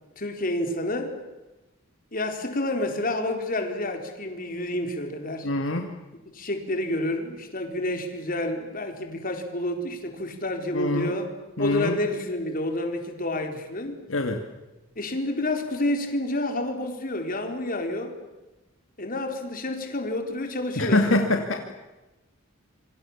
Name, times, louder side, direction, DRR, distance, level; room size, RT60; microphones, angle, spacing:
voice 1, 0.2-1.1 2.1-5.5 6.3-11.3 11.6-14.0 15.0-18.2 19.0-21.1, left 1 dB, 45° left, 5 dB, 4.5 m, -29 dB
voice 2, 5.4-5.9 10.7-11.1 11.6-12.0 14.1-14.4 20.8-21.7, left 2 dB, 70° left, 4 dB, 2.4 m, -24 dB
27.0 x 25.0 x 7.5 m, 1.1 s
head